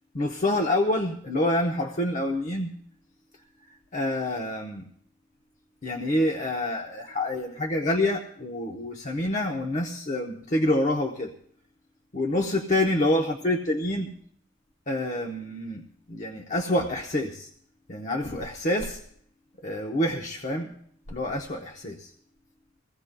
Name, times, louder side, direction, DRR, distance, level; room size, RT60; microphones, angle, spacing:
voice 1, 0.1-2.7 3.9-4.9 5.8-11.3 12.1-14.1 14.9-17.5 17.9-19.0 19.6-20.7 21.1-22.1, left 1 dB, 40° left, 2 dB, 0.8 m, -27 dB
23.0 x 16.0 x 2.2 m, 0.64 s
head